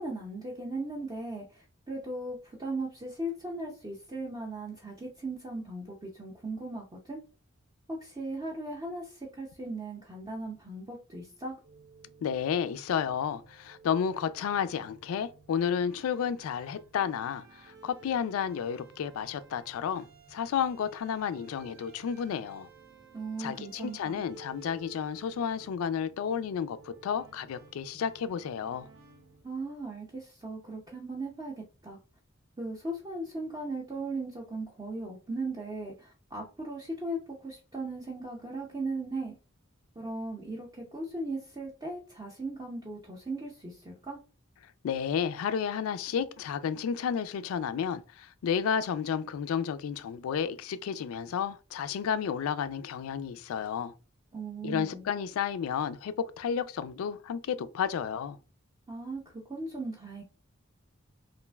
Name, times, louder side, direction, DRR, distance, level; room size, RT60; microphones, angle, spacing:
voice 1, 0.0-7.2 7.9-11.6 23.1-24.2 29.4-32.0 32.6-39.3 40.0-44.2 54.3-55.1 58.9-60.2, right 2 dB, 20° right, 0.5 m, -38 dB
sound 1, 11.6-29.4, right 5 dB, 70° right, 0.8 m, -55 dB
voice 2, 12.2-22.7 23.4-28.9 44.8-53.9 54.6-58.4, left 7 dB, 90° left, 0.3 m, -32 dB
3.1 x 2.4 x 2.2 m
head